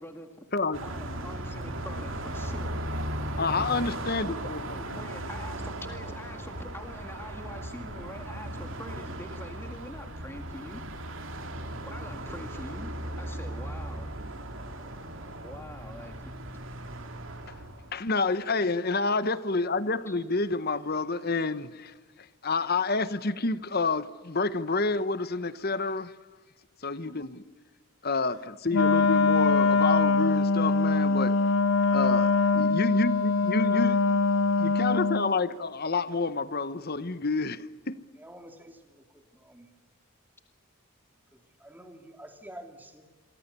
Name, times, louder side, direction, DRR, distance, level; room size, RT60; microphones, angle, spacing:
voice 1, 0.0-0.4 0.8-2.8 3.6-3.7 4.7-10.8 11.9-14.1 15.4-16.3 20.1-20.2, left 1 dB, 10° left, 1.9 m, -44 dB
voice 2, 0.5-0.8 3.4-4.8 17.9-21.9 22.4-26.1 26.8-27.4 28.0-31.4 31.9-34.0 34.6-38.0, left 3 dB, 45° left, 1.0 m, -28 dB
Car passing by, 0.7-17.9, right 1 dB, 60° right, 2.8 m, -37 dB
Wind instrument woodwind instrument, 28.7-35.3, left 3 dB, 65° left, 0.7 m, -23 dB
voice 3, 38.2-39.7 41.3-43.0, right 1 dB, 10° right, 2.6 m, -49 dB
28.0 x 24.0 x 6.9 m
head